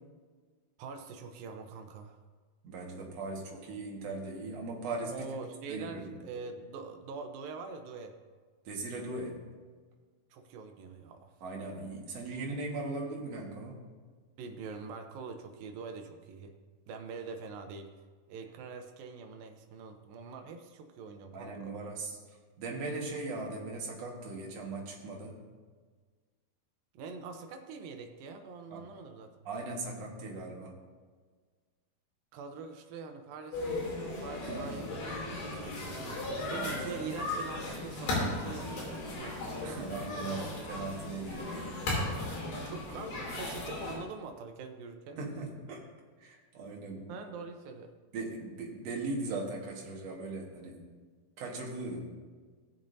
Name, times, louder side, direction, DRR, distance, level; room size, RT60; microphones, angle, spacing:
voice 1, 0.8-2.2 5.1-8.2 10.3-11.4 14.4-16.5 16.9-17.9 18.3-21.8 26.9-29.3 32.3-39.8 42.6-45.2 47.1-47.9, right 5 dB, 75° right, 5 dB, 2.4 m, -44 dB
voice 2, 2.6-5.3 5.7-6.2 8.6-9.6 11.4-13.8 21.3-22.1 22.6-25.4 28.7-28.9 29.4-30.8 34.5-34.6 36.5-36.8 39.6-41.7 45.2-45.9 46.2-47.2 48.1-50.9 51.4-52.1, right 3 dB, 55° right, -1 dB, 2.2 m, -39 dB
sound 1, 33.5-44.0, left 2 dB, 80° left, 4.9 m, -36 dB
18.0 x 7.2 x 2.7 m, 1.5 s
omnidirectional pair, 4.4 m